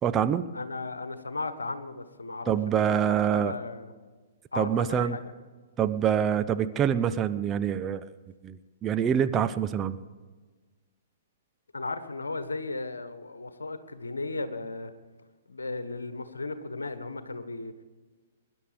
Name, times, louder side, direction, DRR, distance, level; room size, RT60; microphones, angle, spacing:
voice 1, 0.0-0.4 2.5-3.5 4.6-5.2 5.8-8.0 8.4-10.0, right 8 dB, 20° right, 10 dB, 0.7 m, -25 dB
voice 2, 0.5-3.9 4.5-5.2 11.7-14.9 15.5-17.7, left 3 dB, 80° left, 11 dB, 1.4 m, -36 dB
23.5 x 10.5 x 5.2 m, 1.3 s
figure-of-eight pair, 115°, 0 cm